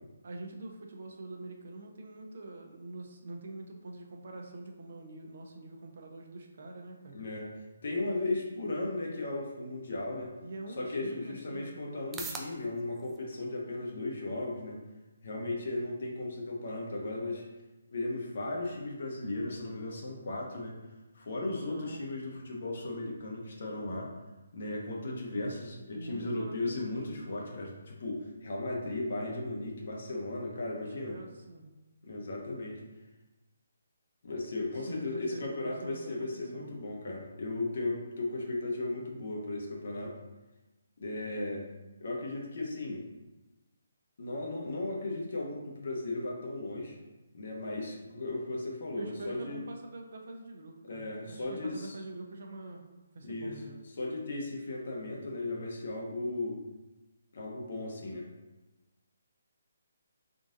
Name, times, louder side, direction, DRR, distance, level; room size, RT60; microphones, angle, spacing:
voice 1, 0.2-7.2 10.4-11.8 21.7-22.1 25.9-27.0 31.0-31.7 34.7-36.7 48.9-52.9 53.1-53.8, right 2 dB, 60° right, 2 dB, 0.7 m, -45 dB
voice 2, 7.1-7.5 7.8-10.3 10.8-14.8 15.2-17.4 17.9-20.8 21.1-24.1 24.5-31.2 32.0-32.8 34.2-40.2 41.0-41.7 42.0-43.0 44.2-47.0 47.3-49.6 50.8-52.0 53.2-53.6 54.0-56.6 57.3-58.3, left 2 dB, 60° left, -1 dB, 0.9 m, -36 dB
sound 1, 10.7-27.6, right 4 dB, 10° right, 0.3 m, -54 dB
3.8 x 2.5 x 3.8 m, 1.1 s
hypercardioid pair, 155°, 0 cm